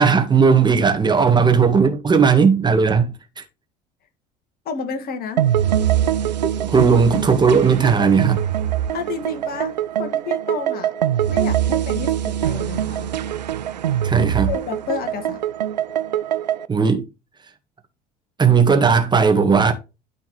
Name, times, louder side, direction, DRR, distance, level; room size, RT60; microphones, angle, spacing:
voice 1, 0.0-3.4 6.6-8.4 14.0-14.5 16.7-17.0 18.4-19.7, right 5 dB, 20° right, 1.7 m, -16 dB
voice 2, 4.7-5.4 8.9-10.9 11.3-13.1 14.5-15.4, left 5 dB, 45° left, 2.0 m, -30 dB
sound 1, 5.4-16.7, right 10 dB, 80° right, 0.5 m, -23 dB
12.5 x 4.4 x 3.2 m
figure-of-eight pair, 65°, 21 cm